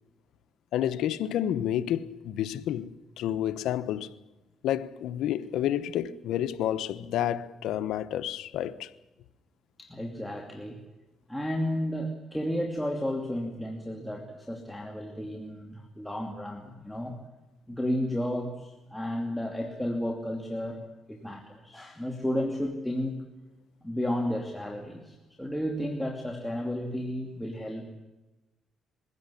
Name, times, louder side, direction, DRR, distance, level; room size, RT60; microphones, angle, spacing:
voice 1, 0.7-4.1 4.6-8.9, left 11 dB, 85° left, 1.0 m, -30 dB
voice 2, 9.8-10.8 11.3-17.2 17.7-20.8 21.1-23.2 23.8-27.8, left 1 dB, 5° left, 2.7 m, -32 dB
22.5 x 16.5 x 9.9 m
cardioid pair, 90°, 0 cm